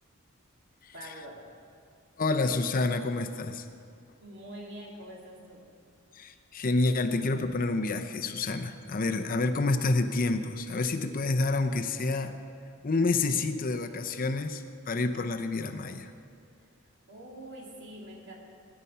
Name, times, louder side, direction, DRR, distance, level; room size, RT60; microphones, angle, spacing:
voice 1, 0.9-1.4 4.2-5.6 16.6-16.7 17.1-18.4, right 1 dB, 60° right, -2 dB, 2.7 m, -45 dB
voice 2, 2.2-3.7 6.1-12.4 12.8-16.1, left 3 dB, 40° left, 7 dB, 0.6 m, -28 dB
19.5 x 9.7 x 5.6 m, 2.3 s
head